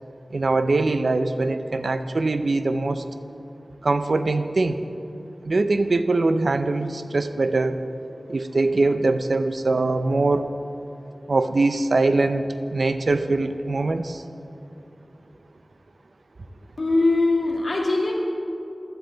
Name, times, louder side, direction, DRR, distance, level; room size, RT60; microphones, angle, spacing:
voice 1, 0.3-3.0 3.8-4.8 5.4-7.8 8.3-10.5 11.3-12.5 12.7-14.2, right 3 dB, 80° right, 10 dB, 0.6 m, -22 dB
voice 2, 16.8-18.1, left 2 dB, 70° left, -3 dB, 2.6 m, -21 dB
15.5 x 11.5 x 3.9 m, 2.8 s
wide cardioid pair, 55°, 0 cm